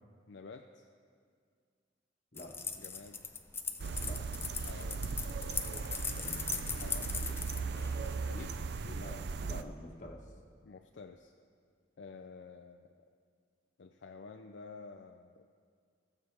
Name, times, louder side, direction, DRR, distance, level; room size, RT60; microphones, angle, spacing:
voice 1, 0.3-0.9 2.8-3.2 4.7-5.0 6.8-8.6 9.7-9.8 10.6-11.3 12.0-13.1 13.8-15.5, left 4 dB, 65° left, 5 dB, 0.4 m, -50 dB
sound 1, 2.4-8.6, left 5 dB, 15° left, 0.5 m, -39 dB
sound 2, 3.8-9.6, right 4 dB, 60° right, 0.5 m, -38 dB
voice 2, 6.1-6.5 8.8-10.2, left 1 dB, 45° left, 0 dB, 1.4 m, -48 dB
20.0 x 7.1 x 3.4 m, 2.1 s
head